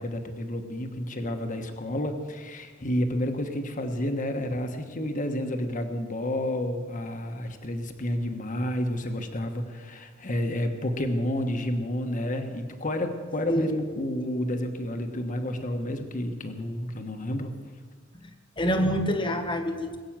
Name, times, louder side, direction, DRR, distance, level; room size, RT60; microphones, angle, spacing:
voice 1, 0.0-17.6, left 1 dB, 40° left, 6 dB, 1.3 m, -30 dB
voice 2, 13.5-13.9 18.6-20.0, equal, 25° left, 7 dB, 1.5 m, -26 dB
21.0 x 8.6 x 7.5 m, 1.5 s
head